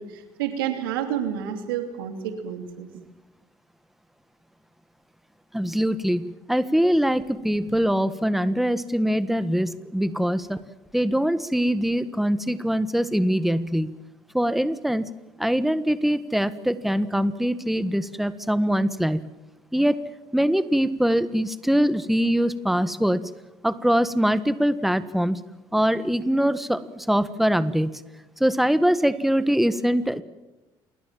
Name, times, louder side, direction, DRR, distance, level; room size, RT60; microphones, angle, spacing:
voice 1, 0.0-2.9, right 9 dB, 90° right, 7 dB, 3.0 m, -29 dB
voice 2, 5.5-10.6 10.9-13.9 14.3-15.1 15.4-19.2 19.7-20.0 20.3-23.2 23.6-25.4 25.7-27.9 28.4-30.2, equal, ahead, 13 dB, 1.5 m, -23 dB
27.5 x 21.0 x 7.6 m, 1.0 s
hypercardioid pair, 60°, 11 cm